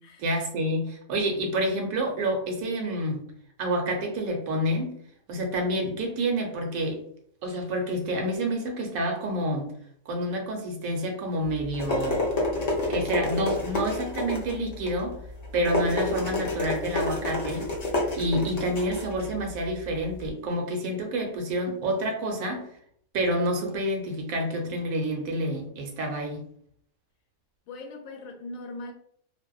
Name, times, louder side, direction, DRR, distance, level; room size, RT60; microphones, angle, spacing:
voice 1, 0.2-3.3 3.6-5.0 5.3-7.0 7.4-9.7 10.1-12.2 12.9-15.2 15.5-17.7 18.1-22.7 23.1-26.4, right 1 dB, 75° right, 1.1 m, -28 dB
sound 1, 11.4-20.3, left 2 dB, 90° left, 0.3 m, -30 dB
Piano, 11.9-14.9, right 2 dB, 40° right, 0.5 m, -40 dB
voice 2, 27.7-28.9, left 2 dB, 70° left, 0.9 m, -40 dB
2.5 x 2.1 x 2.3 m
omnidirectional pair, 1.5 m